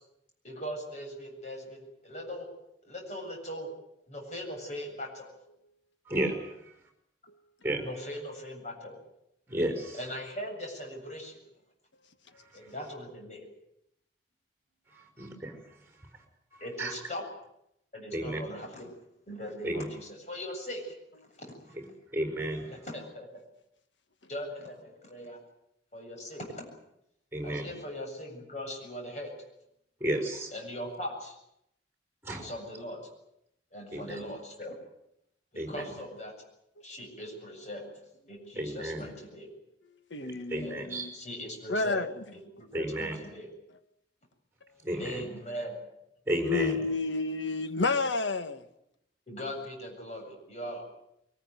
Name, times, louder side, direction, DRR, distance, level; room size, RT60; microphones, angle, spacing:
voice 1, 0.4-2.5 2.8-3.7 4.1-5.3 7.8-9.0 9.9-11.4 12.5-13.5 16.6-17.2 17.9-18.9 19.3-20.9 21.4-21.5 22.7-23.3 24.3-25.4 25.9-26.7 27.4-29.3 30.5-31.4 32.4-33.0 33.7-34.8 35.5-36.3 36.8-37.9 38.3-39.5 40.5-40.8 41.1-42.1 42.3-43.5 45.0-45.8 49.3-50.8, equal, 40° left, 7.9 m, -40 dB
voice 2, 6.1-6.7 7.6-7.8 9.5-10.0 14.9-15.5 16.8-16.9 18.1-18.4 19.6-19.8 22.1-22.7 27.3-27.7 30.0-30.5 32.2-32.5 33.9-34.2 35.6-35.9 38.5-39.1 40.2-41.1 42.7-43.2 44.8-45.2 46.3-46.9, right 1 dB, 15° right, 5.5 m, -32 dB
voice 3, 40.1-41.1 41.7-42.1 46.5-48.6, left 3 dB, 85° left, 1.6 m, -30 dB
23.5 x 19.5 x 9.6 m
head